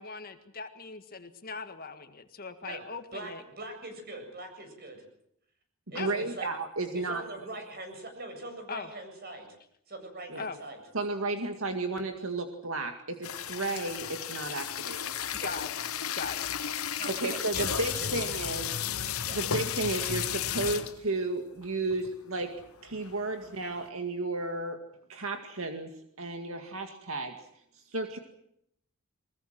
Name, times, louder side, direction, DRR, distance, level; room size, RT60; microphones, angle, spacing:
voice 1, 0.0-3.4 5.9-6.2 8.7-8.9 10.4-10.6 15.4-15.8 16.1-16.5, left 4 dB, 45° left, 8 dB, 1.9 m, -39 dB
voice 2, 3.1-5.0 5.9-6.5 7.0-9.5 9.9-10.8 15.4-15.5 16.9-18.2 19.3-19.4, right 2 dB, 45° right, 5 dB, 7.8 m, -42 dB
voice 3, 5.9-7.2 10.3-10.4 10.9-15.1 17.1-18.9 19.3-22.5 22.8-24.8 25.1-25.9 26.2-27.4 27.9-28.2, right 2 dB, 65° right, 6 dB, 2.1 m, -33 dB
sound 1, 13.2-21.1 21.6-21.7 21.9-22.2 22.6-23.9, left 9 dB, 80° left, 1.1 m, -34 dB
23.0 x 21.5 x 7.7 m, 0.72 s
head